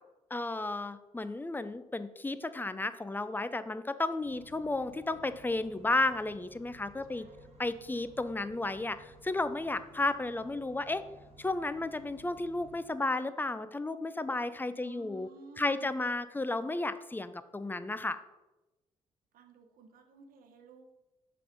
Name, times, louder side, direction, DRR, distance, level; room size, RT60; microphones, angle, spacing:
voice 1, 0.3-7.3 7.6-11.0 11.4-15.3 15.6-18.2, left 2 dB, 10° left, 13 dB, 0.4 m, -33 dB
sound 1, 4.2-12.9, right 1 dB, 40° right, 1.5 m, -57 dB
voice 2, 7.1-8.1 14.8-15.9 19.3-20.9, right 4 dB, 65° right, 6 dB, 0.8 m, -55 dB
5.8 x 3.2 x 5.1 m, 1.1 s
hypercardioid pair, 45°, 16 cm